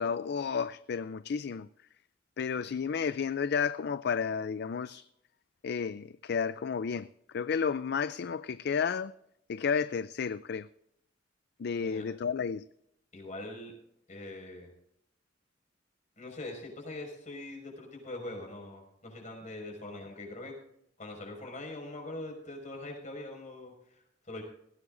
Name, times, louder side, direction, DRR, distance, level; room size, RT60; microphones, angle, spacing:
voice 1, 0.0-1.7 2.4-5.1 5.6-7.1 7.3-9.1 9.5-10.7 11.6-12.7, left 6 dB, 60° left, 0.4 m, -32 dB
voice 2, 13.1-13.7 14.1-14.7 16.2-20.6 21.0-24.4, left 2 dB, 40° left, 5.5 m, -42 dB
19.0 x 16.0 x 2.6 m
head